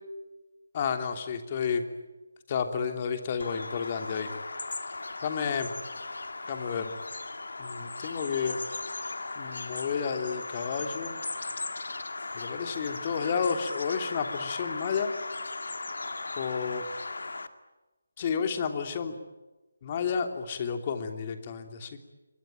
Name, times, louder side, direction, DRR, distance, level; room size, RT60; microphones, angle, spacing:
voice 1, 0.7-1.8 2.5-4.3 5.2-5.7 6.5-6.9 7.6-8.6 9.3-11.2 12.3-15.1 16.3-16.8 18.2-19.2 19.8-22.0, left 6 dB, 30° left, 7 dB, 3.0 m, -31 dB
Bird vocalization bird call bird song, 3.4-17.5, left 3 dB, 70° left, 2.0 m, -37 dB
28.0 x 23.5 x 9.1 m, 1.1 s
figure-of-eight pair, 155°, 0 cm